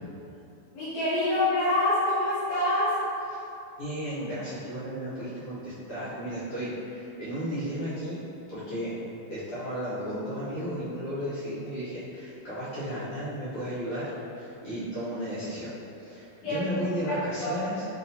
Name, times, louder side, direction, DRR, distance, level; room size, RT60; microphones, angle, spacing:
voice 1, 0.7-2.9 16.4-16.6 17.1-17.7, left 1 dB, 80° left, -15 dB, 3.0 m, -26 dB
voice 2, 3.8-8.2 8.5-8.9 9.3-15.7 16.0-17.8, equal, 60° left, -13 dB, 1.8 m, -34 dB
6.9 x 2.6 x 2.6 m, 2.8 s
omnidirectional pair, 3.6 m